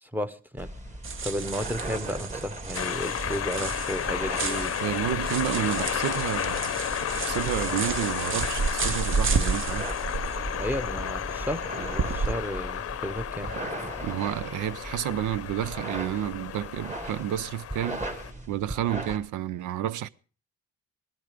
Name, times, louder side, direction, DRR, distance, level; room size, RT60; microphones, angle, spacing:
voice 1, 0.0-0.7 1.2-4.7 10.6-13.5, equal, 5° right, 1.0 m, -33 dB
sound 1, 0.6-19.2, right 1 dB, 25° right, 2.4 m, -38 dB
sound 2, 1.0-12.3, right 5 dB, 40° right, 1.0 m, -32 dB
sound 3, 2.7-18.3, left 10 dB, 50° left, 0.7 m, -33 dB
voice 2, 4.8-6.7 7.0-9.9 13.4-13.5 14.0-18.0 18.5-20.1, right 12 dB, 80° right, 0.6 m, -30 dB
18.0 x 12.5 x 5.1 m
cardioid pair, 90°, 30 cm